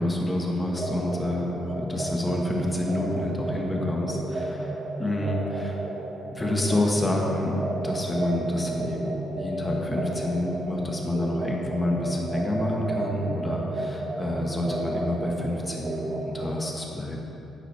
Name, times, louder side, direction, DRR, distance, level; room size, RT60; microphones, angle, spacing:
voice 1, 0.0-5.8 6.3-7.6 7.8-17.2, left 1 dB, 20° left, -1 dB, 1.7 m, -28 dB
sound 1, 0.7-16.6, right 2 dB, 50° right, 1.8 m, -33 dB
11.0 x 8.6 x 3.5 m, 2.7 s
cardioid pair, 90°, 0 cm